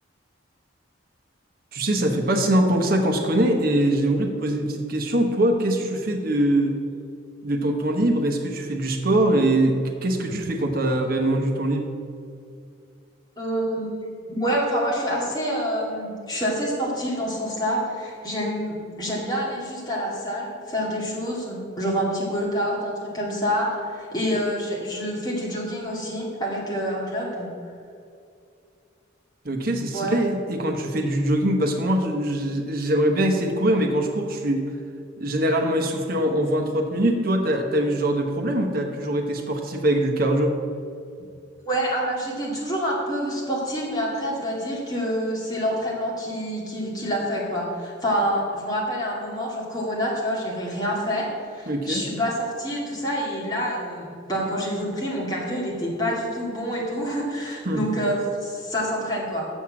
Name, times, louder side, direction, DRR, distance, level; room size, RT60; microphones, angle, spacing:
voice 1, 1.7-6.8 7.4-11.9 29.4-34.7 35.2-40.5 51.7-52.0 57.6-57.8, right 1 dB, 45° right, 3 dB, 1.0 m, -23 dB
voice 2, 13.4-13.9 14.3-27.5 29.9-30.2 41.7-59.5, equal, 20° left, -4 dB, 2.1 m, -27 dB
7.2 x 6.5 x 7.5 m, 2.4 s
head